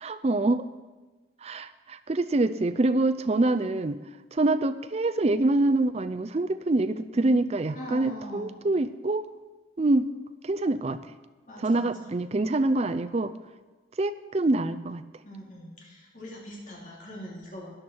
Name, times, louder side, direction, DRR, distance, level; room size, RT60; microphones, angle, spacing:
voice 1, 0.0-0.7 1.4-4.0 4.3-9.2 9.8-10.1 10.4-11.0 11.6-13.3 14.0-15.0, right 2 dB, 35° right, 10 dB, 0.4 m, -25 dB
voice 2, 7.7-8.5 11.5-12.1 15.2-17.7, equal, 45° left, -4 dB, 3.0 m, -41 dB
13.0 x 10.0 x 4.5 m, 1.2 s
head